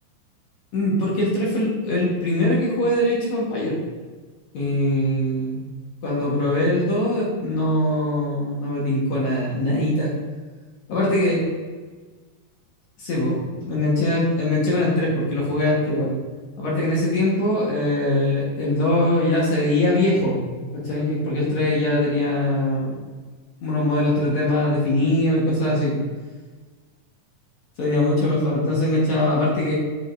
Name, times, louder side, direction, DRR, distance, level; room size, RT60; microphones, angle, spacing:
voice 1, 0.7-3.7 4.5-5.6 6.0-10.1 10.9-11.4 13.0-16.2 16.6-22.9 23.6-26.0 27.8-29.7, left 1 dB, 60° left, -5 dB, 2.4 m, -22 dB
8.1 x 5.0 x 2.6 m, 1.4 s
omnidirectional pair, 3.9 m